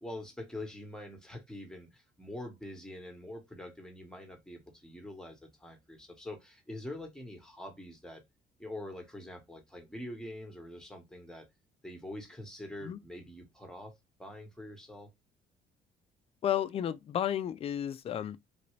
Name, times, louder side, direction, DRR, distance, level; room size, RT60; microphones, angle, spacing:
voice 1, 0.0-8.2 8.6-11.5 11.8-13.9 14.2-15.1, left 1 dB, 5° left, 1.0 m, -45 dB
voice 2, 16.4-18.4, left 10 dB, 35° left, 0.3 m, -32 dB
3.2 x 2.6 x 3.0 m
cardioid pair, 110°, 17 cm